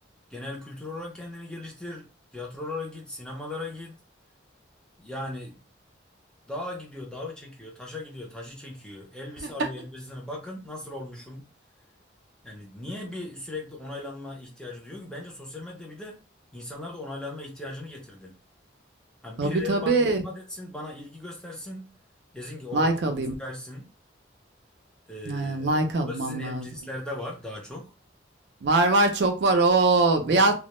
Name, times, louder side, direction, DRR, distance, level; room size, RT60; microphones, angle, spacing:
voice 1, 0.3-4.0 5.0-5.7 6.5-11.5 12.4-16.2 16.5-18.3 19.2-21.9 22.3-23.9 25.1-27.9 30.3-30.5, left 2 dB, 5° left, 0.5 m, -38 dB
voice 2, 19.4-20.2 22.7-23.3 25.3-26.7 28.6-30.5, right 2 dB, 60° right, 0.4 m, -22 dB
2.1 x 2.0 x 2.9 m
head